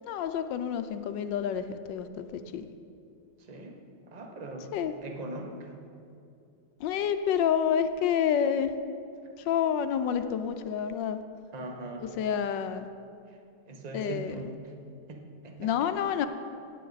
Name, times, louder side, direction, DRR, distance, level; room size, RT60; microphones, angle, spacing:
voice 1, 0.0-2.7 4.7-4.9 6.8-8.7 9.5-11.2 12.2-12.9 13.9-14.3 15.6-16.3, left 8 dB, 75° left, 9 dB, 1.2 m, -28 dB
voice 2, 3.4-3.8 4.1-4.7 5.0-5.8 11.5-12.1 13.3-13.4 13.7-14.7 15.1-15.9, right 2 dB, 30° right, 3 dB, 0.8 m, -41 dB
17.5 x 8.4 x 4.0 m, 2.5 s
omnidirectional pair, 2.1 m